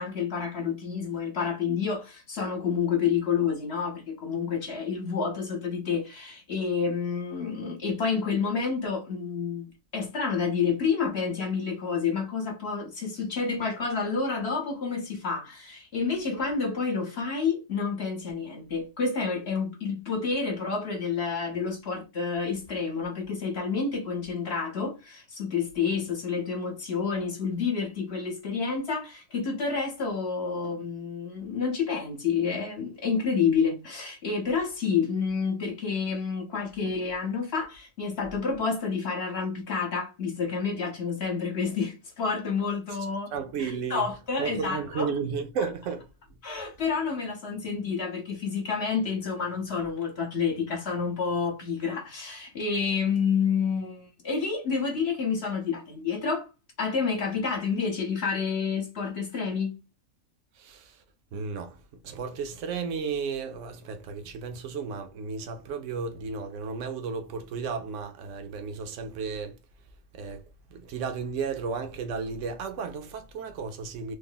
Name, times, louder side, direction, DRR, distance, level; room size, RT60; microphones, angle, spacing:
voice 1, 0.0-9.7 9.9-43.3 43.6-45.1 45.6-45.7 46.4-56.5 56.8-59.7, left 5 dB, 55° left, 1.0 m, -29 dB
voice 2, 43.3-44.1 44.4-46.1 60.6-61.0 61.3-69.5 70.1-70.4 70.7-74.2, right 5 dB, 70° right, 1.0 m, -33 dB
3.2 x 2.1 x 3.8 m
omnidirectional pair, 1.4 m